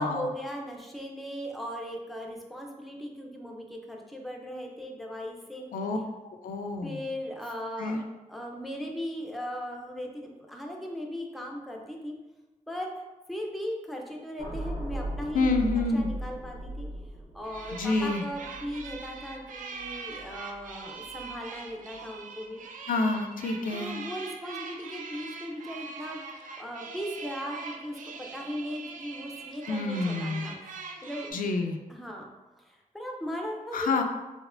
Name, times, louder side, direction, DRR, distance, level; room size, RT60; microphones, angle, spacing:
voice 1, 0.0-5.6 6.8-8.0 8.3-12.2 12.7-12.9 13.3-16.9 17.3-22.6 23.7-26.2 26.6-31.3 31.9-32.3 32.6-34.0, equal, ahead, 1 dB, 0.4 m, -38 dB
voice 2, 6.3-7.0 7.8-8.0 15.3-16.1 17.8-18.2 22.9-23.9 29.7-30.5 31.3-31.8 33.7-34.0, left 3 dB, 80° left, 5 dB, 0.4 m, -28 dB
sound 1, 14.4-20.7 21.0-21.3, right 1 dB, 55° right, 1.1 m, -38 dB
sound 2, 17.4-31.3, right 4 dB, 70° right, 0.4 m, -42 dB
4.2 x 2.4 x 2.4 m, 1.1 s
wide cardioid pair, 170°, 14 cm